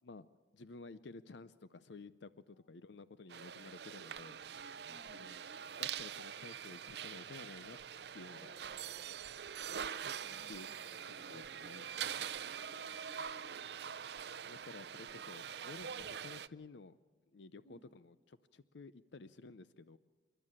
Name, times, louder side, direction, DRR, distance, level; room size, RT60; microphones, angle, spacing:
voice 1, 0.5-4.4 5.0-5.4 5.8-7.8 8.1-8.5 10.5-10.7 11.1-11.9 14.5-17.0 17.3-20.0, left 3 dB, 75° left, 14 dB, 0.6 m, -53 dB
voice 2, 2.5-2.9 4.8-5.3 8.2-9.4 10.2-11.4 12.4-13.8 17.6-17.9, left 1 dB, 25° left, 7 dB, 1.7 m, -64 dB
sound 1, 3.3-16.5, right 8 dB, 65° right, 0.5 m, -44 dB
27.5 x 12.0 x 8.7 m, 1.5 s
head